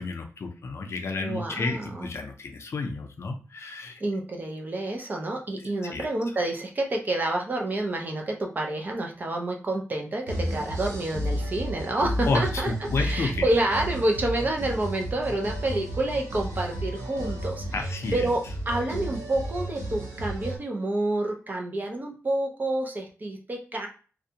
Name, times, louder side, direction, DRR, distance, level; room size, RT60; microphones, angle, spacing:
voice 1, 0.0-4.0 5.9-6.1 12.3-13.4 17.7-18.3, left 3 dB, 60° left, 4 dB, 0.5 m, -31 dB
voice 2, 1.2-2.1 4.0-17.6 18.1-18.4 18.7-23.9, right 2 dB, 35° right, 1 dB, 0.5 m, -28 dB
sound 1, 10.3-20.6, right 1 dB, 80° right, 0.7 m, -32 dB
2.5 x 2.1 x 2.7 m, 0.37 s
wide cardioid pair, 180°, 5 cm